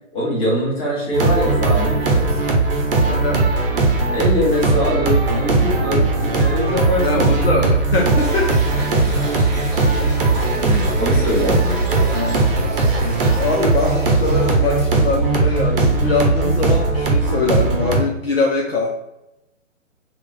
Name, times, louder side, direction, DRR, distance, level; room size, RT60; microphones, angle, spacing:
voice 1, 0.1-2.5 4.1-7.5 9.1-9.2 10.6-12.5, equal, 15° left, -5 dB, 1.1 m, -23 dB
sound 1, 1.1-18.0, right 3 dB, 45° right, 0.9 m, -18 dB
voice 2, 3.1-3.5 7.0-8.8 12.8-13.1 13.4-18.9, left 3 dB, 50° left, 0 dB, 0.6 m, -22 dB
sound 2, 8.2-16.2, right 1 dB, 10° right, 0.6 m, -33 dB
3.9 x 2.2 x 4.0 m, 0.90 s
figure-of-eight pair, 130°, 38 cm